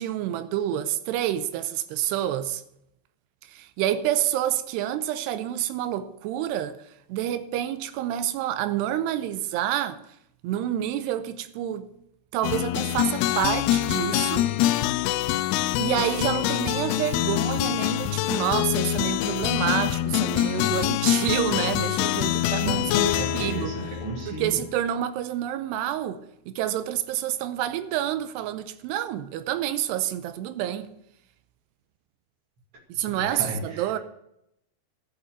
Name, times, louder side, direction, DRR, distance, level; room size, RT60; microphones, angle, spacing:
voice 1, 0.0-2.6 3.5-6.8 7.1-10.0 10.4-11.9 12.3-14.5 15.8-23.8 24.3-30.9 32.9-34.0, right 11 dB, 90° right, 2.9 m, -28 dB
sound 1, 12.4-24.7, left 14 dB, 80° left, 2.4 m, -25 dB
voice 2, 22.6-24.6 33.1-33.8, right 3 dB, 40° right, 2.8 m, -33 dB
12.5 x 6.9 x 8.0 m
omnidirectional pair, 4.7 m